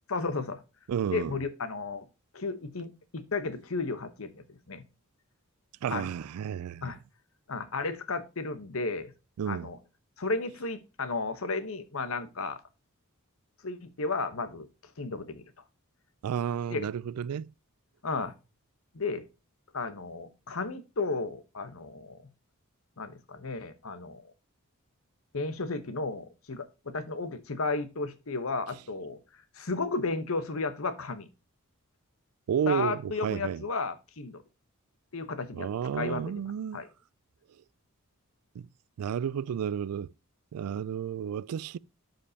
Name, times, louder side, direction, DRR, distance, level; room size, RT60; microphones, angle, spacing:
voice 1, 0.1-0.6 1.1-2.1 2.3-4.8 5.9-6.1 6.8-7.0 7.5-9.1 9.5-9.8 10.2-12.6 13.6-14.7 15.0-15.4 16.7-16.9 18.0-18.3 18.9-19.2 19.7-22.2 23.0-24.2 25.3-29.2 29.6-31.3 32.7-34.4 35.1-36.3 36.7-36.9, left 3 dB, 65° left, 1.0 m, -33 dB
voice 2, 0.9-1.3 5.8-6.9 9.4-9.7 16.2-17.5 32.5-33.6 35.5-36.8 38.6-38.7 39.0-40.1 40.5-41.8, right 8 dB, 85° right, 0.3 m, -32 dB
11.5 x 5.3 x 2.8 m
head